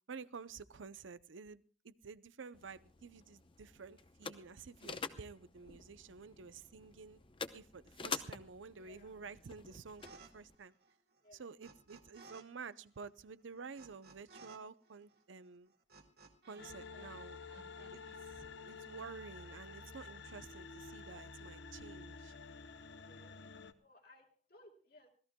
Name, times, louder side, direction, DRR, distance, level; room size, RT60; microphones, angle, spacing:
voice 1, 0.1-7.2 7.5-10.7 11.3-15.7 16.5-17.4 17.9-18.0 18.3-22.3, right 5 dB, 85° right, 16 dB, 0.6 m, -51 dB
sound 1, 2.5-10.6, left 5 dB, 25° left, 0.7 m, -48 dB
voice 2, 8.8-9.2 11.2-11.5 16.7-18.0 23.0-25.1, left 1 dB, 50° left, 2 dB, 2.7 m, -64 dB
sound 2, 10.0-10.3 10.6-12.4 12.7-16.7 17.0-18.2, right 4 dB, 55° right, 2.1 m, -59 dB
sound 3, 16.6-23.7, left 4 dB, 65° left, 0.9 m, -50 dB
25.5 x 17.0 x 2.2 m, 0.38 s
head